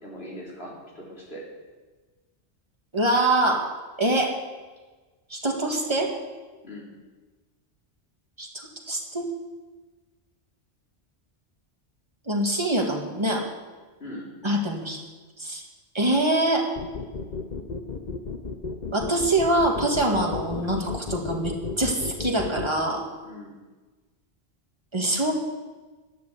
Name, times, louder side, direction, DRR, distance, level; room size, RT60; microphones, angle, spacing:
voice 1, 0.0-1.4 6.6-6.9 14.0-14.3 23.2-23.6, equal, 60° left, -5 dB, 4.1 m, -40 dB
voice 2, 2.9-3.7 4.0-4.4 5.3-6.1 8.4-9.3 12.3-13.5 14.4-15.0 15.4-15.6 15.9-16.7 18.9-23.0 24.9-25.3, right 1 dB, 25° right, 1 dB, 2.1 m, -24 dB
sound 1, 16.8-22.7, left 4 dB, 40° left, 1.0 m, -33 dB
12.0 x 10.5 x 8.1 m, 1.3 s
omnidirectional pair, 1.1 m